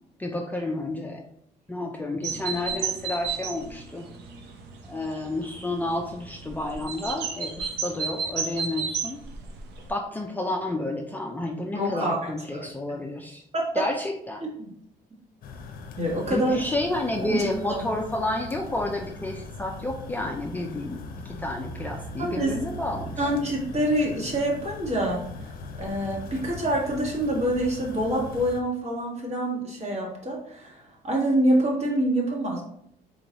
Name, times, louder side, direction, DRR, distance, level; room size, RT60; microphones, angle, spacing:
voice 1, 0.2-1.2 1.7-4.1 4.8-9.2 9.9-13.4 13.8-14.4 16.3-23.3, left 2 dB, 10° left, 0 dB, 0.4 m, -30 dB
sound 1, 2.2-9.9, right 5 dB, 80° right, 0.8 m, -33 dB
voice 2, 11.7-12.7 13.5-13.9 14.6-14.7 16.0-16.5 17.2-17.4 17.7-17.8 22.2-22.5 23.2-25.5 25.8-32.6, right 1 dB, 40° right, -2 dB, 1.6 m, -26 dB
sound 2, 15.4-28.6, left 3 dB, 60° left, 0.6 m, -40 dB
3.9 x 3.8 x 2.9 m, 0.72 s
cardioid pair, 110°, 17 cm